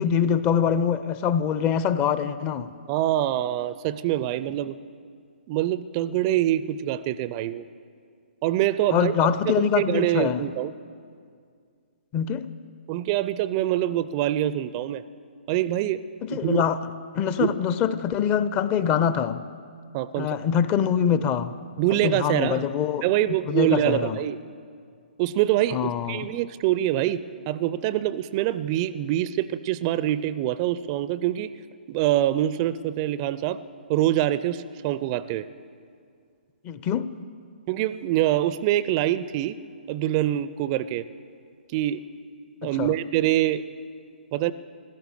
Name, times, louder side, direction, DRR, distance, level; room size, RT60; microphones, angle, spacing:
voice 1, 0.0-2.7 8.9-10.4 12.1-12.5 16.2-16.8 17.1-19.4 20.2-21.5 22.0-23.0 23.5-24.2 25.7-26.3 36.6-37.1 42.6-42.9, left 8 dB, 25° left, 13 dB, 0.5 m, -24 dB
voice 2, 2.9-4.8 5.5-7.6 8.4-9.1 9.4-10.7 12.9-15.0 15.5-16.0 16.3-16.6 17.4-17.5 19.9-20.3 21.8-22.6 23.0-24.4 25.2-25.8 26.1-31.5 31.9-33.6 33.9-35.4 37.7-39.6 39.9-41.0 41.7-42.0 42.6-43.6 44.3-44.5, right 13 dB, 30° right, 16 dB, 0.4 m, -25 dB
16.0 x 12.5 x 6.7 m, 2.2 s
figure-of-eight pair, 130°, 5 cm